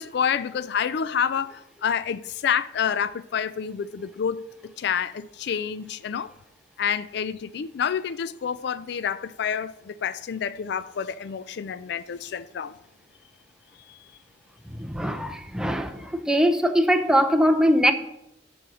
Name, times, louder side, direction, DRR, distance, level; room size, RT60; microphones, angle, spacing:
voice 1, 0.0-6.3 6.8-12.8 13.9-14.0, left 7 dB, 65° left, 0.4 m, -28 dB
voice 2, 14.7-17.9, equal, 5° right, 0.7 m, -22 dB
9.8 x 6.2 x 6.2 m
head